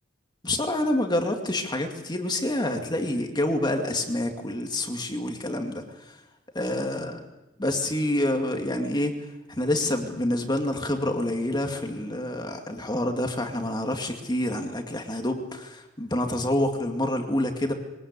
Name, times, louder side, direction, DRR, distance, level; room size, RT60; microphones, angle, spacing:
voice 1, 0.4-6.2 6.5-7.3 7.6-17.7, left 1 dB, 20° left, 4 dB, 2.3 m, -27 dB
23.0 x 19.0 x 8.4 m, 0.99 s
head